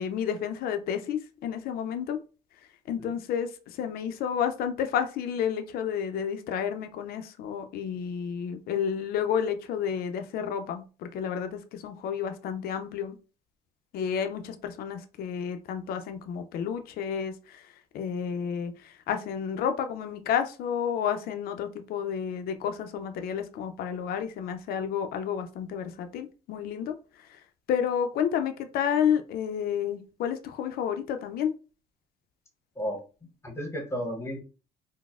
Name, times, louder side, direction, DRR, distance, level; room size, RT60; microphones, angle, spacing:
voice 1, 0.0-2.2 2.9-13.1 13.9-27.4 27.7-31.5, left 8 dB, 65° left, 8 dB, 0.4 m, -31 dB
voice 2, 32.8-34.4, equal, 15° left, 2 dB, 0.8 m, -34 dB
3.9 x 2.0 x 2.4 m, 0.35 s
cardioid pair, 110°, 17 cm